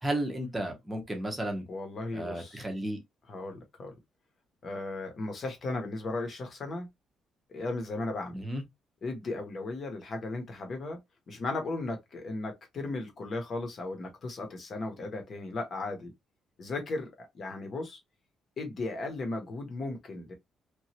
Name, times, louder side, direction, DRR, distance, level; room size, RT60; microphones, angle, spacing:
voice 1, 0.0-1.6 2.1-3.0 8.3-8.6, right 1 dB, 10° right, 0.8 m, -33 dB
voice 2, 1.7-2.7 3.3-3.9 4.6-6.9 7.5-8.4 9.0-11.0 11.3-16.1 16.6-18.0 18.6-20.3, left 2 dB, 35° left, 0.9 m, -36 dB
3.0 x 2.4 x 2.8 m
cardioid pair, 180°, 0 cm